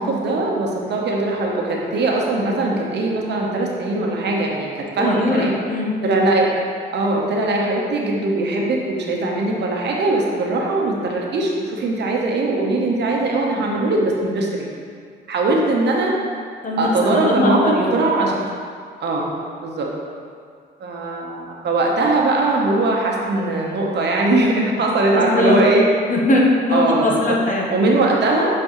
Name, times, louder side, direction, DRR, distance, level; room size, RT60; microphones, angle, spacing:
voice 1, 0.0-5.5 6.0-6.5 6.9-14.7 15.3-16.1 16.8-17.6 17.9-18.3 19.0-19.2 19.6-19.9 20.8-25.8 26.7-27.0 27.7-28.5, right 2 dB, 60° right, -1 dB, 1.0 m, -20 dB
voice 2, 5.0-6.0 16.6-17.9 18.2-18.3 25.1-25.6 26.1-27.6, left 2 dB, 40° left, -2 dB, 1.2 m, -20 dB
7.8 x 4.3 x 3.1 m, 2.2 s
cardioid pair, 90°, 20 cm